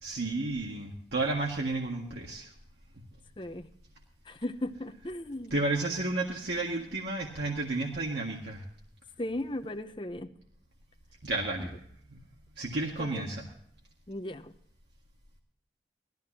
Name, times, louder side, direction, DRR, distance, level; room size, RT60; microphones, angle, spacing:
voice 1, 0.0-2.5 5.5-8.6 11.2-11.8 12.1-12.2 12.6-13.4, right 2 dB, 75° right, -2 dB, 1.9 m, -32 dB
voice 2, 3.4-3.7 4.3-5.6 9.2-10.3 13.0-13.3 14.1-14.5, left 1 dB, 25° left, 10 dB, 0.7 m, -37 dB
19.0 x 14.0 x 2.8 m, 0.65 s
head